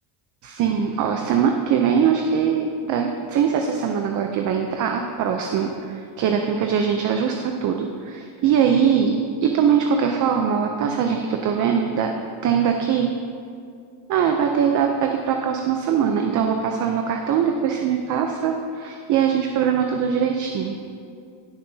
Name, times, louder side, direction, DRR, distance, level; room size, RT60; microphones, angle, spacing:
voice 1, 0.4-12.1 12.4-13.1 14.1-20.8, right 7 dB, 45° right, 3 dB, 0.6 m, -22 dB
18.5 x 6.7 x 2.8 m, 2.3 s
cardioid pair, 160°, 43 cm